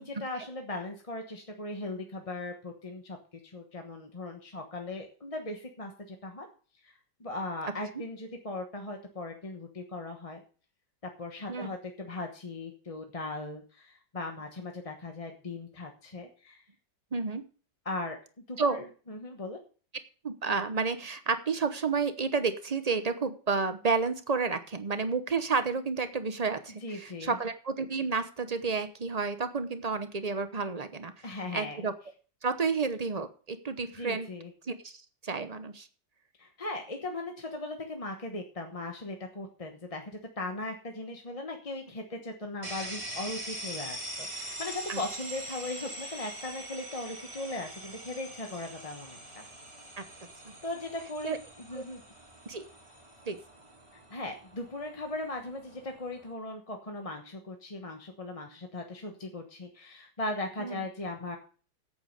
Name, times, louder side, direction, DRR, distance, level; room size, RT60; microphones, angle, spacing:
voice 1, 0.0-3.2 3.4-6.5 6.8-6.9 7.2-10.4 11.0-16.6 17.8-18.2 18.5-19.6 26.8-27.4 31.2-31.9 34.0-34.5 36.4-40.0 40.4-49.4 50.6-51.3 51.7-52.0 54.1-61.4, left 2 dB, 25° left, 3 dB, 1.0 m, -38 dB
voice 2, 17.1-17.4 18.6-18.8 20.2-31.1 31.5-31.9 32.4-34.3 34.6-35.9 44.9-45.0 50.0-50.1 50.4-50.5 51.2-51.4 51.7-51.8 52.5-52.6 53.3-53.4 60.6-60.8, right 4 dB, 35° right, 10 dB, 0.7 m, -31 dB
sound 1, 42.6-56.3, right 1 dB, 15° right, 2.5 m, -43 dB
8.6 x 8.5 x 6.6 m, 0.40 s
omnidirectional pair, 1.9 m